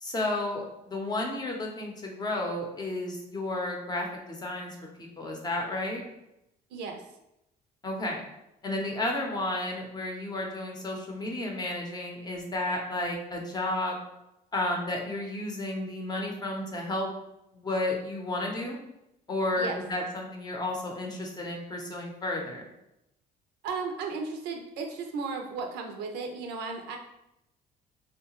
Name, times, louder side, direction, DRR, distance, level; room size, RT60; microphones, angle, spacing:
voice 1, 0.0-6.0 7.8-8.2 8.6-14.0 14.5-17.1 17.5-18.8 19.3-22.7, left 2 dB, 25° left, 0 dB, 0.6 m, -32 dB
voice 2, 6.7-7.0 19.6-19.8 23.6-27.0, right 4 dB, 85° right, 3 dB, 0.5 m, -35 dB
2.8 x 2.1 x 2.9 m, 0.86 s
cardioid pair, 110°, 17 cm